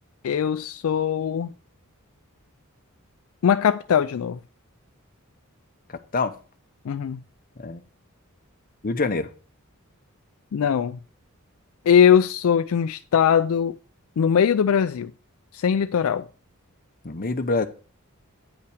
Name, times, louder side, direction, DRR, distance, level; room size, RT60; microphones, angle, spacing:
voice 1, 0.2-1.5 3.4-4.4 6.9-7.2 10.5-11.0 11.9-13.8 14.2-15.1 15.5-16.3, left 8 dB, 70° left, 0.4 m, -20 dB
voice 2, 8.8-9.3 17.0-17.7, left 3 dB, 40° left, 0.8 m, -25 dB
9.2 x 5.7 x 4.9 m
head